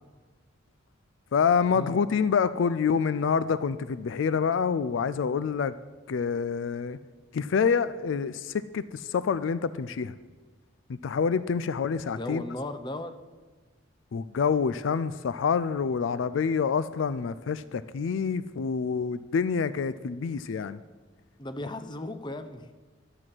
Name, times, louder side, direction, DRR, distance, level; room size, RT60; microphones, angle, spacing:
voice 1, 1.3-5.7 6.1-7.0 7.3-10.1 11.0-12.4 14.1-20.8, left 6 dB, 70° left, 15 dB, 0.4 m, -27 dB
voice 2, 12.0-13.1 21.4-22.7, left 1 dB, 25° left, 9 dB, 0.6 m, -36 dB
12.0 x 7.8 x 6.1 m, 1.3 s
head